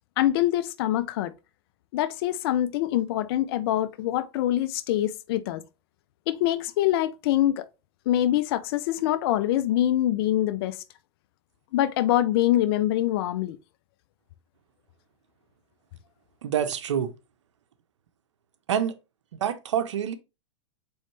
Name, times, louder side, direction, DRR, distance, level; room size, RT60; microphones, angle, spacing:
voice 1, 0.2-1.3 1.9-5.6 6.3-7.7 8.1-10.8 11.7-13.6, left 13 dB, 55° left, 0.4 m, -24 dB
voice 2, 16.4-17.1 18.7-19.0 19.3-20.1, right 9 dB, 75° right, 0.6 m, -27 dB
4.2 x 3.1 x 3.1 m
hypercardioid pair, 110°, 15 cm